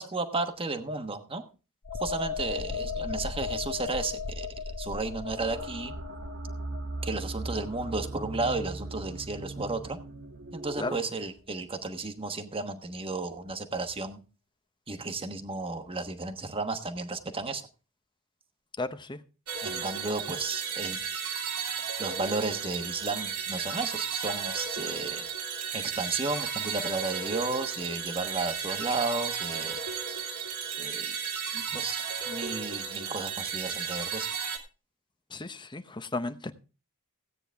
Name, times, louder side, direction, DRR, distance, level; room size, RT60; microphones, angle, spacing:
voice 1, 0.0-1.4 2.0-5.9 7.0-10.0 10.5-14.2 14.9-17.6 19.6-21.0 22.0-25.3 25.7-29.8 30.8-31.1 31.5-34.3, right 3 dB, 25° right, 1.2 m, -33 dB
sound 1, 1.8-9.3 9.6-9.8, left 5 dB, 65° left, 0.9 m, -37 dB
sound 2, 5.4-10.9, right 2 dB, 55° right, 1.4 m, -39 dB
voice 2, 18.8-19.2 35.3-36.5, left 2 dB, 20° left, 0.8 m, -34 dB
sound 3, 19.5-34.6, right 7 dB, 75° right, 2.5 m, -34 dB
16.5 x 9.0 x 3.5 m
head